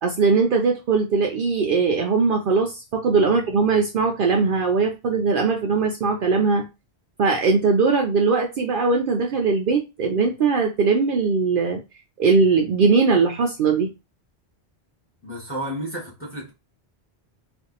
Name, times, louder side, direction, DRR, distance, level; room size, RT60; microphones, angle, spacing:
voice 1, 0.0-6.6 7.2-11.8 12.2-13.9, right 4 dB, 60° right, 0.7 m, -20 dB
voice 2, 15.2-16.5, right 1 dB, 10° left, 1.2 m, -32 dB
2.6 x 2.5 x 3.8 m
omnidirectional pair, 1.1 m